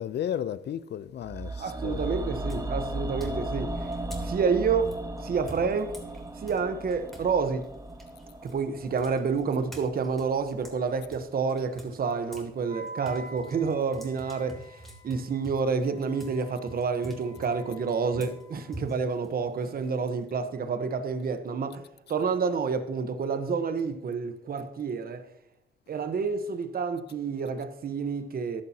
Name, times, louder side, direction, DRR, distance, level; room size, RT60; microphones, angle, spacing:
voice 1, 0.0-2.0, left 10 dB, 60° left, 0.6 m, -33 dB
sound 1, 1.2-11.3 11.6-11.7, right 1 dB, 15° right, 1.1 m, -36 dB
sound 2, 1.6-1.9 2.5-7.3 7.6-12.5 12.8-20.2, right 1 dB, ahead, 3.2 m, -47 dB
voice 2, 1.6-3.7 4.2-4.9 5.2-5.9 6.4-7.6 8.4-14.7 15.0-21.8 22.1-25.2 25.9-28.6, right 5 dB, 50° right, 1.2 m, -29 dB
Wind instrument woodwind instrument, 12.6-18.8, right 1 dB, 75° right, 3.7 m, -48 dB
14.5 x 11.0 x 2.9 m
cardioid pair, 90°, 20 cm